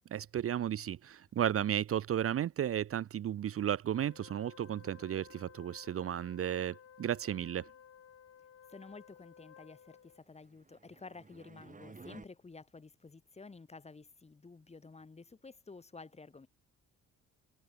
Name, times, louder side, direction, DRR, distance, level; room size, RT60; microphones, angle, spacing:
voice 1, 0.1-7.7, right 10 dB, 50° right, 0.7 m, -34 dB
Wind instrument woodwind instrument, 3.9-10.2, left 8 dB, 55° left, 2.7 m, -57 dB
voice 2, 8.7-16.5, left 3 dB, 20° left, 1.5 m, -52 dB
sound 1, 10.3-12.3, right 4 dB, 25° right, 6.0 m, -54 dB
cardioid pair, 90°, 30 cm